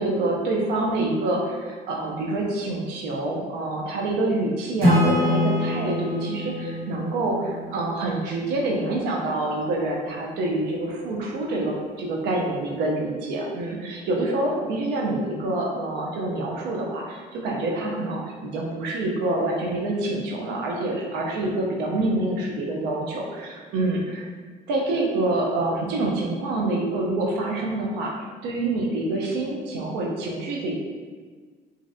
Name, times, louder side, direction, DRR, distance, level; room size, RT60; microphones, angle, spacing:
voice 1, 0.0-24.2 24.7-28.1 28.4-30.7, right 2 dB, 90° right, -1 dB, 0.6 m, -26 dB
Acoustic guitar / Strum, 4.8-8.4, left 1 dB, 60° right, 1.5 m, -24 dB
3.1 x 2.6 x 2.6 m, 1.5 s
cardioid pair, 110°, 17 cm